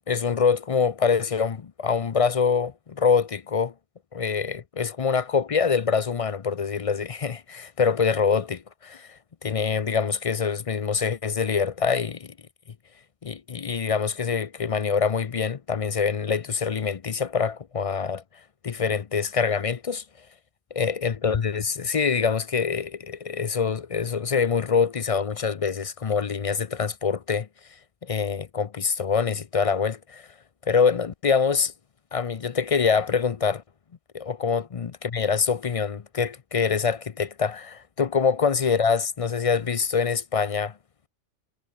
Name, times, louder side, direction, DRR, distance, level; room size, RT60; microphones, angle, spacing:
voice 1, 0.1-3.7 4.1-12.3 13.2-18.2 18.6-20.0 20.7-27.5 28.0-30.3 30.7-31.7 32.1-33.6 34.1-40.7, left 6 dB, 40° left, 0.5 m, -25 dB
omnidirectional pair, 1.2 m